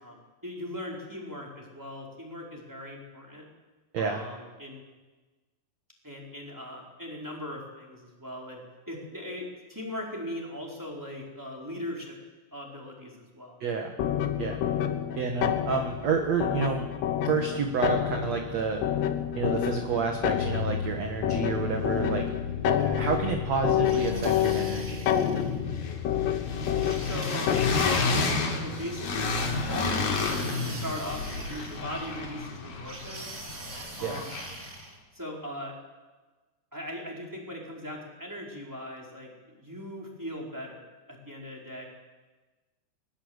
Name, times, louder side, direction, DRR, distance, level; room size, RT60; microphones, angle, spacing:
voice 1, 0.0-3.4 3.9-4.8 6.0-8.6 8.9-12.2 12.5-13.6 27.0-30.3 30.6-33.3 34.0-34.3 35.1-35.7 36.7-40.8 41.1-41.9, left 1 dB, 5° right, -2 dB, 4.2 m, -39 dB
voice 2, 13.6-13.9 14.4-14.6 15.2-16.8 17.2-18.8 19.4-22.3 22.6-25.1 34.0-34.2, right 5 dB, 60° right, 3 dB, 1.8 m, -29 dB
sound 1, 14.0-28.1, left 10 dB, 70° left, 3.3 m, -28 dB
sound 2, 20.8-20.9 21.1-22.3 22.5-34.7, left 3 dB, 55° left, 4.5 m, -32 dB
sound 3, 23.8-25.6 26.8-28.5 29.8-32.2 32.8-35.0, right 2 dB, 30° right, 1.3 m, -44 dB
21.5 x 20.5 x 8.2 m, 1.3 s
omnidirectional pair, 5.2 m